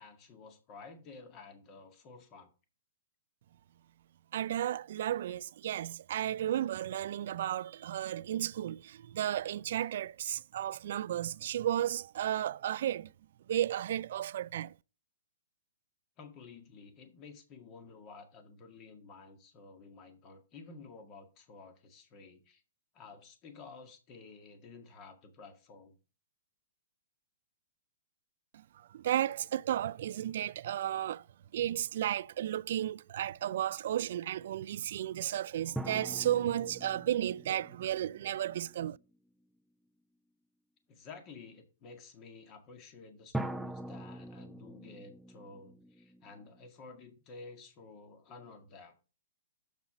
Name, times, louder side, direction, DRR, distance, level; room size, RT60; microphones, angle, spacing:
voice 1, 0.0-2.5 16.2-22.6 22.9-26.0 32.1-32.2 40.9-48.9, left 4 dB, 30° left, 1.8 m, -52 dB
voice 2, 4.3-13.1 13.5-14.7 28.5-28.6 28.9-31.2 31.5-39.0, right 11 dB, 60° right, 0.3 m, -33 dB
sound 1, 35.8-39.1 43.3-46.7, right 1 dB, ahead, 0.5 m, -43 dB
7.3 x 5.7 x 5.0 m
hypercardioid pair, 140°, 0 cm